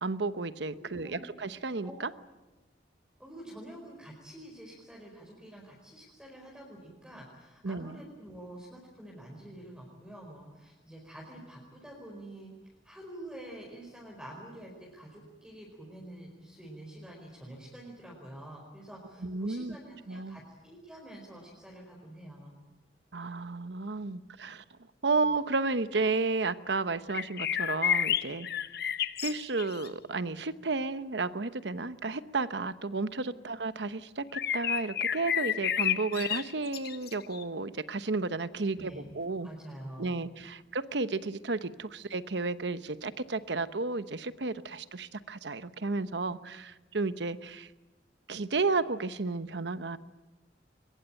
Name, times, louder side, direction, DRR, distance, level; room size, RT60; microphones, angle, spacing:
voice 1, 0.0-2.1 7.6-8.0 19.2-19.8 20.1-20.4 23.1-24.6 25.0-28.5 29.2-39.5 40.0-47.7 48.3-50.0, right 3 dB, 70° right, 13 dB, 1.0 m, -32 dB
voice 2, 0.7-1.2 1.8-1.9 3.2-22.5 33.2-33.3 38.6-39.1 39.4-40.2, right 1 dB, 5° right, -2 dB, 4.8 m, -47 dB
sound 1, 27.1-29.9 34.3-37.4, left 9 dB, 60° left, 0.9 m, -31 dB
23.0 x 21.5 x 9.0 m, 1.1 s
head